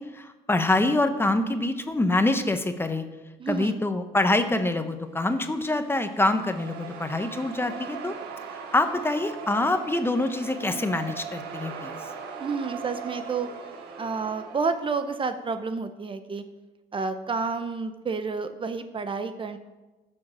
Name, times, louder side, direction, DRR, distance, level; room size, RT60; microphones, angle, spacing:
voice 1, 0.0-3.0 3.5-8.1 8.7-12.0, left 2 dB, 15° left, 8 dB, 0.9 m, -25 dB
voice 2, 3.4-3.7 12.4-13.5 14.0-16.4 16.9-19.6, right 4 dB, 30° right, 9 dB, 0.7 m, -30 dB
sound 1, 5.3-15.1, right 6 dB, 75° right, 1.7 m, -40 dB
14.0 x 6.5 x 6.2 m, 1.1 s
cardioid pair, 110°, 17 cm